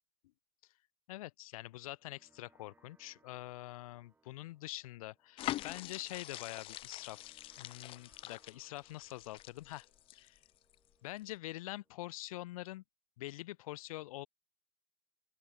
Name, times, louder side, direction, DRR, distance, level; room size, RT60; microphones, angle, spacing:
voice 1, 1.1-10.4 11.0-12.8 13.2-14.3, left 17 dB, 90° left, 1.3 m, -45 dB
sound 1, 1.7-12.6, right 3 dB, 10° right, 4.7 m, -73 dB
sound 2, 5.4-10.7 11.2-11.3, left 15 dB, 30° left, 0.6 m, -44 dB
open air
supercardioid pair, 160°, 18 cm